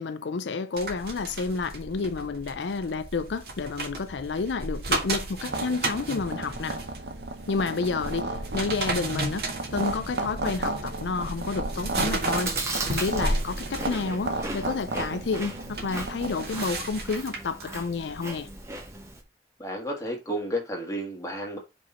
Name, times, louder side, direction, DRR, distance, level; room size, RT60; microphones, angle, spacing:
voice 1, 0.0-6.8 7.5-9.5 9.7-12.5 12.9-18.5, left 4 dB, 90° left, 0.5 m, -30 dB
sound 1, 0.8-17.6 18.1-18.3, right 2 dB, 60° right, 1.6 m, -34 dB
sound 2, 5.5-16.6, right 2 dB, 80° right, 0.9 m, -34 dB
Chewing mastication, 11.9-19.2, right 2 dB, 15° right, 1.1 m, -37 dB
voice 2, 19.6-21.6, equal, 20° left, 1.6 m, -32 dB
5.2 x 4.2 x 4.3 m
head